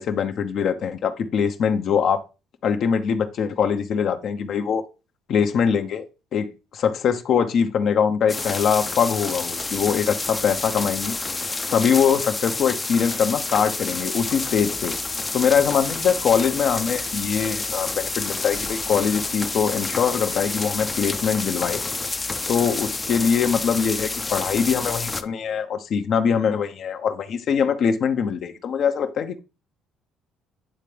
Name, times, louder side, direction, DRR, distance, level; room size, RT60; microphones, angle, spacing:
voice 1, 0.0-2.2 2.6-4.8 5.3-6.0 6.3-11.2 11.7-14.9 15.3-21.8 22.5-29.4, left 7 dB, 60° left, 0.8 m, -22 dB
sound 1, 8.3-25.2, left 3 dB, 20° left, 0.6 m, -29 dB
9.8 x 3.3 x 3.3 m
supercardioid pair, 70°, 0 cm